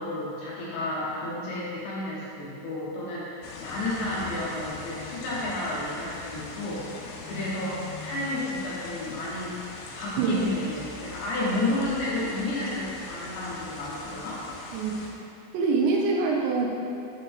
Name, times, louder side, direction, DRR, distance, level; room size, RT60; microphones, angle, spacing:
voice 1, 0.0-9.6 9.9-14.4, left 1 dB, 70° left, -7 dB, 3.5 m, -31 dB
sound 1, 3.4-15.1, left 3 dB, 85° left, 3.4 m, -41 dB
voice 2, 14.7-15.1 15.5-16.7, right 4 dB, 80° right, -1 dB, 2.8 m, -24 dB
8.6 x 6.6 x 3.6 m, 2.6 s
omnidirectional pair, 5.5 m